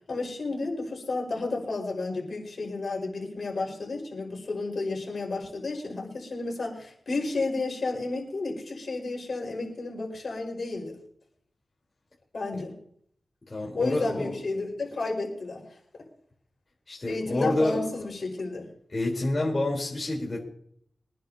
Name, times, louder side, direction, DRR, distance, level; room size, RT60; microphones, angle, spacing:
voice 1, 0.1-11.0 12.3-12.7 13.7-15.6 17.1-18.7, left 3 dB, 60° left, -1 dB, 5.0 m, -32 dB
voice 2, 13.5-14.3 16.9-17.8 18.9-20.5, left 2 dB, 40° left, -3 dB, 3.8 m, -28 dB
24.5 x 10.5 x 2.8 m, 0.65 s
wide cardioid pair, 85°, 0 cm